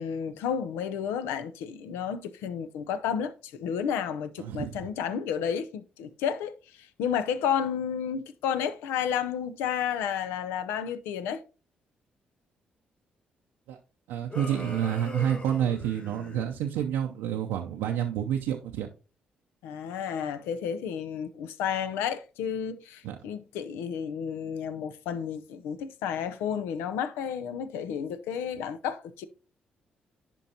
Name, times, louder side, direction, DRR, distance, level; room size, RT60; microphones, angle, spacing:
voice 1, 0.0-11.4 19.6-29.3, left 8 dB, 85° left, 0.6 m, -31 dB
voice 2, 4.4-4.8 13.7-13.8 14.1-18.9 23.0-23.2, right 10 dB, 85° right, 0.6 m, -29 dB
sound 1, 14.3-16.4, left 2 dB, 40° left, 3.5 m, -41 dB
10.5 x 4.5 x 2.8 m
hypercardioid pair, 50°, 4 cm